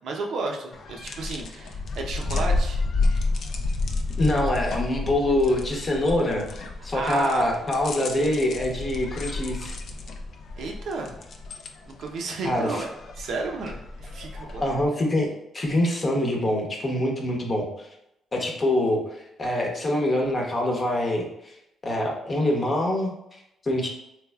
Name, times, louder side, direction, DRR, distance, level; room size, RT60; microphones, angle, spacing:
voice 1, 0.0-2.8 6.9-7.5 10.6-11.1 11.9-12.9 13.2-14.7, right 3 dB, 70° right, 2 dB, 0.7 m, -32 dB
sound 1, 0.7-14.9, left 3 dB, 60° left, 0.4 m, -31 dB
voice 2, 4.2-9.8 12.4-12.8 14.6-17.9 18.3-21.5 21.8-23.9, left 1 dB, 35° left, 0 dB, 0.9 m, -25 dB
3.3 x 3.3 x 2.3 m, 0.82 s
cardioid pair, 90°, 0 cm